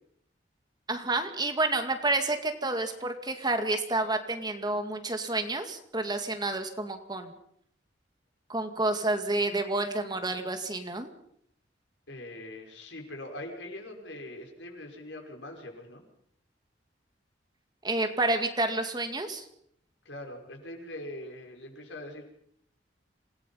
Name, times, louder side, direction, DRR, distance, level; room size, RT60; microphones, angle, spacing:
voice 1, 0.9-7.3 8.5-11.1 17.8-19.5, right 2 dB, 25° right, 6 dB, 2.1 m, -29 dB
voice 2, 12.1-16.0 20.1-22.2, left 1 dB, 80° left, 2 dB, 5.7 m, -42 dB
27.0 x 19.0 x 5.7 m, 0.70 s
head